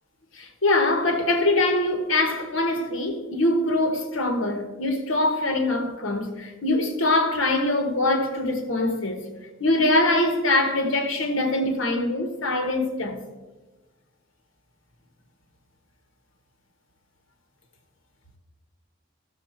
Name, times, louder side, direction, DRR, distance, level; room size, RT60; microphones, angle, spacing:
voice 1, 0.3-9.3 9.6-13.2, left 2 dB, 70° left, 1.4 m, -23 dB
14.0 x 6.6 x 4.5 m
head